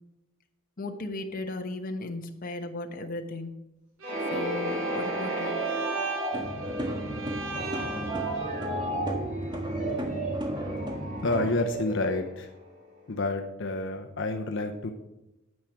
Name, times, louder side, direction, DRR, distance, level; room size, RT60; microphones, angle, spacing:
voice 1, 0.8-3.6 4.3-5.6, left 2 dB, 45° left, 5 dB, 1.1 m, -36 dB
sound 1, 4.0-12.8, right 2 dB, 35° right, 3.1 m, -33 dB
Bowed string instrument, 4.0-8.7, right 2 dB, 80° right, 1.1 m, -38 dB
sound 2, 6.3-11.5, right 1 dB, 20° right, 1.5 m, -34 dB
voice 2, 11.2-12.5 13.1-14.9, left 2 dB, 65° left, 4 dB, 0.8 m, -29 dB
9.5 x 8.6 x 5.9 m, 0.94 s
head